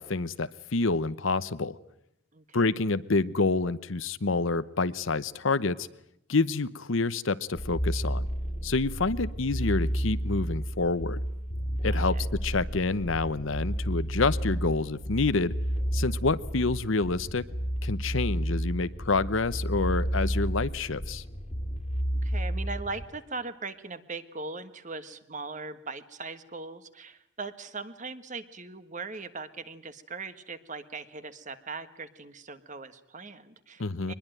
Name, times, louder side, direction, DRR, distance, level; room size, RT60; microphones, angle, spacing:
voice 1, 0.0-1.8 2.5-5.9 6.3-8.3 8.6-11.2 11.8-15.5 15.9-17.5 17.8-21.2 33.8-34.1, left 3 dB, 65° left, 15 dB, 0.9 m, -28 dB
voice 2, 2.3-2.7 11.9-12.2 22.2-34.1, right 3 dB, 35° right, 11 dB, 1.5 m, -40 dB
sound 1, 7.5-23.0, equal, 30° left, 2.1 m, -31 dB
24.0 x 21.0 x 9.2 m, 0.80 s
head